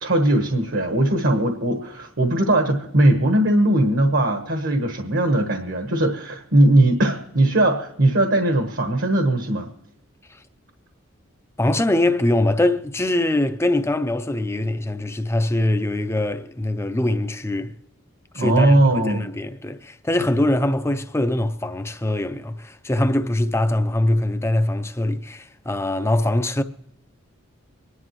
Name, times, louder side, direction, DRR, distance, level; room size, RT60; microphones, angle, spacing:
voice 1, 0.0-9.7 18.3-19.3, right 1 dB, 70° right, 1.3 m, -19 dB
voice 2, 11.6-17.7 18.3-26.6, left 1 dB, 15° left, 0.5 m, -22 dB
25.5 x 11.0 x 3.1 m
head